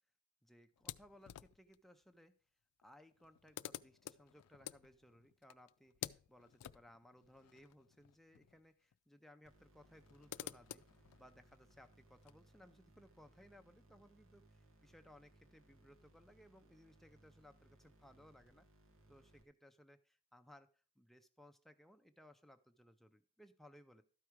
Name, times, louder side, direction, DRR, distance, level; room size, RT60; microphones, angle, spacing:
voice 1, 0.4-2.3 2.8-10.8 11.2-14.5 14.8-18.7 19.1-20.7 21.0-24.0, left 1 dB, ahead, 7 dB, 0.5 m, -63 dB
sound 1, 0.8-1.8 2.8-2.9 3.1-8.7 8.9-9.0 9.8-12.3, left 12 dB, 85° left, 0.3 m, -52 dB
sound 2, 9.4-19.4, right 1 dB, 60° right, 1.2 m, -68 dB
12.5 x 4.8 x 4.6 m, 0.41 s
head